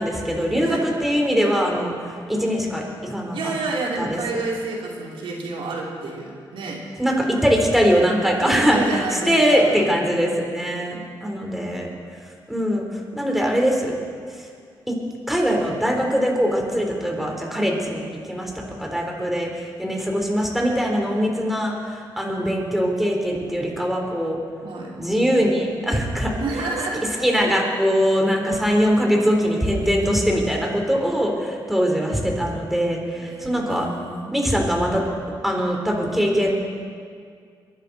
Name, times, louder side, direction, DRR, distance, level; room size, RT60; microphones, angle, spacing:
voice 1, 0.0-3.5 4.0-4.4 7.0-8.8 9.3-11.9 12.5-13.9 14.3-14.5 14.9-15.0 15.3-24.4 25.0-26.3 27.2-33.9 34.3-35.0 35.4-36.5, equal, ahead, 0 dB, 3.7 m, -22 dB
voice 2, 3.3-6.8 8.4-9.8 24.6-24.9 26.4-27.1 33.1-34.3, right 3 dB, 80° right, -2 dB, 2.9 m, -29 dB
22.0 x 11.0 x 4.2 m, 2.1 s
cardioid pair, 65°, 9 cm